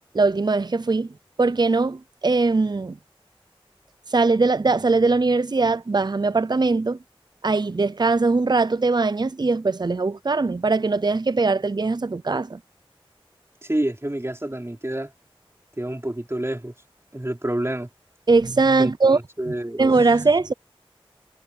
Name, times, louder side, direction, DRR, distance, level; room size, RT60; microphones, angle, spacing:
voice 1, 0.1-1.1 1.4-3.0 4.1-7.0 7.4-12.6 18.3-19.2 19.8-20.5, right 3 dB, 45° right, 0.5 m, -20 dB
voice 2, 13.6-15.1 15.8-16.7 17.1-17.9 18.8-19.9, right 1 dB, 25° right, 3.7 m, -28 dB
wide cardioid pair, 40°, 10 cm